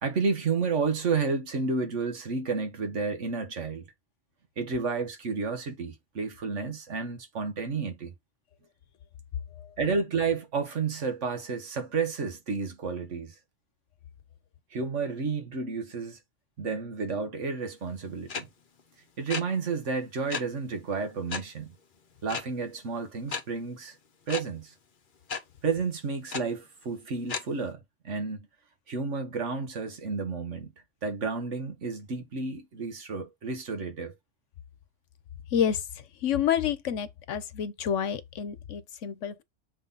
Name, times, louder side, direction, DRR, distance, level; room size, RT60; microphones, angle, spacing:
voice 1, 0.0-3.9 4.6-8.1 9.8-13.3 14.7-16.2 16.6-18.5 19.2-21.7 22.2-24.0 24.3-24.7 25.6-28.5 28.9-30.7 31.0-34.1, right 4 dB, 80° right, 1.7 m, -31 dB
sound 1, 18.3-18.4 19.3-19.4 20.3-20.4 21.3-21.4 22.3-22.4 23.3-23.4 24.3-24.4 25.3-25.4 26.3-26.4 27.3-27.4, left 5 dB, 45° left, 1.0 m, -32 dB
voice 2, 36.2-39.4, left 8 dB, 80° left, 1.2 m, -28 dB
6.5 x 3.8 x 4.0 m
omnidirectional pair, 1.2 m